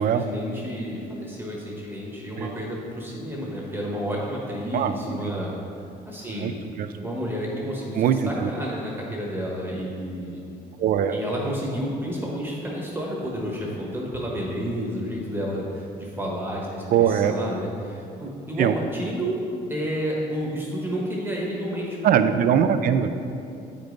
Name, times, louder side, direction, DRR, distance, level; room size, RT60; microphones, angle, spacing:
voice 1, 0.0-5.5 6.0-6.5 7.0-10.4 11.1-19.4 19.7-22.0, equal, 10° right, -3 dB, 1.3 m, -30 dB
voice 2, 4.7-5.3 6.4-6.5 6.8-6.9 7.9-8.5 10.8-11.1 16.9-17.3 18.6-18.8 22.0-23.1, right 9 dB, 60° right, 9 dB, 0.5 m, -21 dB
8.8 x 5.3 x 3.9 m, 2.5 s
cardioid pair, 110°, 17 cm